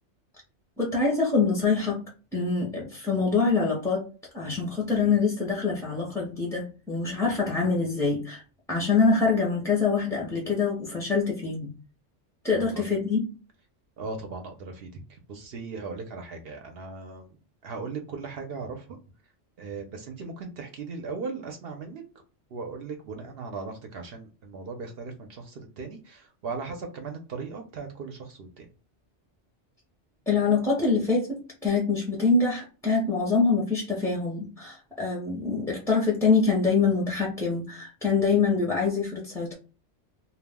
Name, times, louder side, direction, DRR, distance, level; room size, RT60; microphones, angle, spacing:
voice 1, 0.8-2.0 2.3-4.1 4.3-8.4 8.7-11.7 12.4-13.2 30.3-39.5, left 4 dB, 5° left, -3 dB, 0.5 m, -25 dB
voice 2, 14.0-15.0 15.3-17.3 17.6-18.8 19.6-22.0 22.5-28.7, right 4 dB, 65° right, 4 dB, 0.7 m, -38 dB
2.3 x 2.0 x 3.4 m, 0.34 s
omnidirectional pair, 1.2 m